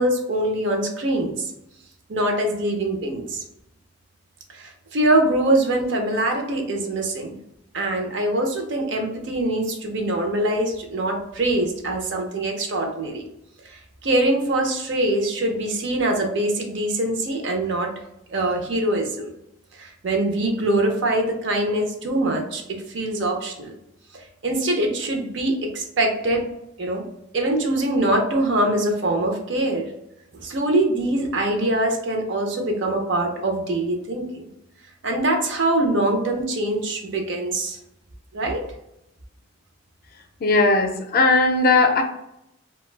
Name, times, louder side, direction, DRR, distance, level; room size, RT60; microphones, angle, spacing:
voice 1, 0.0-1.5 2.1-3.4 4.5-7.4 7.7-13.2 13.7-17.9 18.3-19.3 19.8-22.6 22.9-23.7 24.4-26.4 26.8-27.0 27.3-29.9 30.3-34.5 35.0-37.8 38.3-38.6, right 1 dB, 60° right, 2 dB, 0.5 m, -23 dB
voice 2, 40.1-42.0, left 3 dB, 50° left, 4 dB, 0.4 m, -18 dB
2.5 x 2.2 x 3.1 m, 0.83 s
head